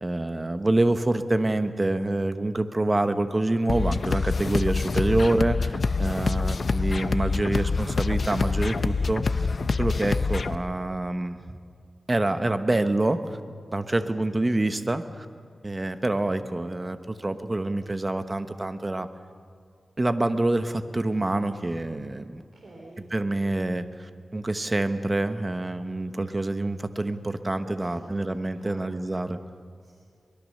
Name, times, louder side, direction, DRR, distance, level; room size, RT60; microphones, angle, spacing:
voice 1, 0.0-9.5 9.8-11.4 12.1-13.4 13.7-15.3 15.6-19.1 20.0-22.4 23.1-23.9 24.3-29.4, right 2 dB, 25° right, 9 dB, 1.1 m, -26 dB
sound 1, 3.7-10.5, left 4 dB, 55° left, 0.7 m, -26 dB
voice 2, 6.1-6.6 14.0-14.2 22.5-23.0 27.6-29.3 29.8-29.9, right 1 dB, 55° right, -1 dB, 3.2 m, -46 dB
23.5 x 21.0 x 6.6 m, 2.3 s
wide cardioid pair, 105°, 0 cm